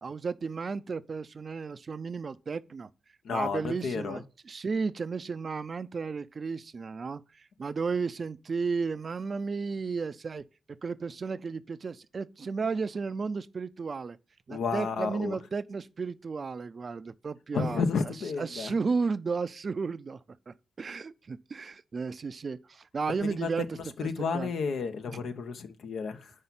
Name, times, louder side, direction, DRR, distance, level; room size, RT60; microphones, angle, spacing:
voice 1, 0.0-2.9 3.3-7.2 7.6-10.4 10.8-14.2 14.5-17.8 18.4-20.2 20.5-24.5, right 4 dB, 50° right, 0.4 m, -33 dB
voice 2, 3.2-4.2 14.5-15.4 17.5-18.7 23.2-26.3, left 5 dB, 75° left, 0.7 m, -32 dB
5.5 x 4.7 x 5.8 m
supercardioid pair, 45°, 0 cm